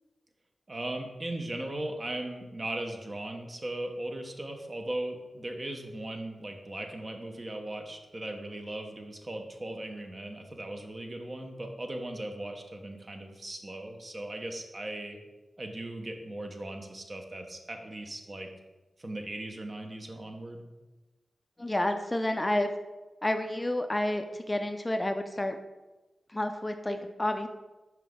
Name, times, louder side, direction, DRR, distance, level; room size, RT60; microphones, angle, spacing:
voice 1, 0.7-15.2 15.6-18.5 19.0-20.7, right 1 dB, 40° right, 4 dB, 0.9 m, -38 dB
voice 2, 21.6-22.7 23.2-25.6 26.3-27.5, left 1 dB, 20° left, 7 dB, 0.4 m, -30 dB
5.8 x 4.5 x 3.6 m, 1.1 s
cardioid pair, 50°, 0 cm